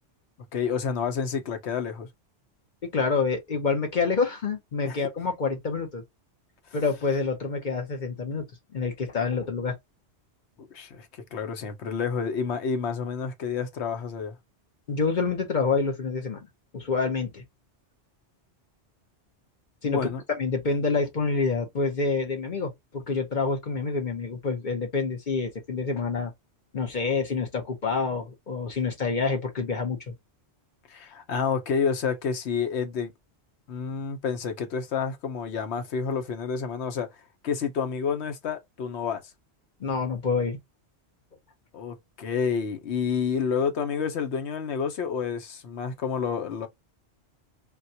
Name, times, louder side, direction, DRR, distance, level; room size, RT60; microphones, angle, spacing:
voice 1, 0.5-2.1 4.8-5.0 10.6-14.4 19.8-20.2 30.9-33.1 33.7-37.1 37.4-39.2 41.7-46.7, left 6 dB, 70° left, 1.0 m, -29 dB
voice 2, 2.9-6.0 6.7-8.5 8.7-9.7 14.9-16.5 16.7-17.4 19.8-20.1 20.4-26.3 26.7-30.1 39.8-40.6, left 4 dB, 45° left, 0.9 m, -27 dB
3.8 x 2.2 x 2.7 m
omnidirectional pair, 1.2 m